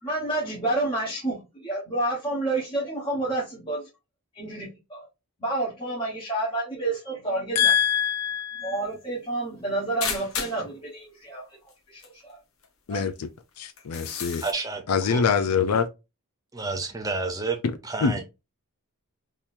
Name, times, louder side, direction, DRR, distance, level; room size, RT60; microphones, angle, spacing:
voice 1, 0.0-3.9 4.3-5.1 5.4-7.8 8.6-11.6 11.9-12.4 12.9-13.0, right 2 dB, 20° left, 1.3 m, -29 dB
voice 2, 7.6-8.7 12.9-13.3 13.6-14.4 14.9-15.9 18.0-18.1, left 7 dB, 90° left, 0.5 m, -24 dB
sound 1, 10.0-10.7 11.7-11.8 12.0-12.1 12.6-12.7 13.8-14.5, left 6 dB, 65° left, 0.9 m, -32 dB
voice 3, 14.4-15.3 16.5-17.6 17.8-18.2, right 3 dB, 15° right, 0.7 m, -30 dB
3.7 x 3.0 x 2.6 m
head